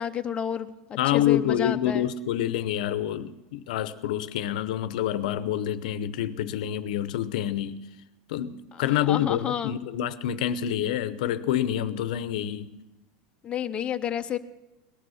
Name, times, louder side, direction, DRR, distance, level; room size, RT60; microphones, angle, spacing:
voice 1, 0.0-2.1 8.7-9.8 13.4-14.4, left 9 dB, 25° left, 0.7 m, -30 dB
voice 2, 1.0-7.8 8.3-12.7, left 11 dB, 75° left, 0.7 m, -27 dB
18.5 x 11.5 x 6.4 m
supercardioid pair, 125°, 4 cm